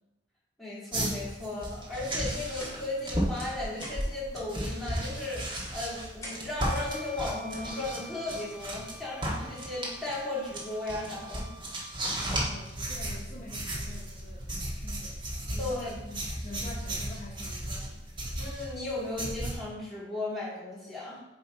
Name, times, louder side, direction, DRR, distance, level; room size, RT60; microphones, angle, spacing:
voice 1, 0.6-11.5 15.6-15.9 18.4-21.2, left 2 dB, ahead, -8 dB, 2.2 m, -36 dB
sound 1, 0.9-8.9 9.2-19.5, right 1 dB, 30° right, 1.4 m, -35 dB
sound 2, 2.3-3.4 3.7-4.3 5.0-6.7, left 1 dB, 20° left, 1.7 m, -47 dB
Bowed string instrument, 6.5-11.9, equal, 60° right, 1.0 m, -49 dB
voice 2, 12.0-15.2 15.5-18.0, left 2 dB, 45° left, -3 dB, 0.9 m, -46 dB
7.6 x 3.0 x 4.7 m, 1.0 s
head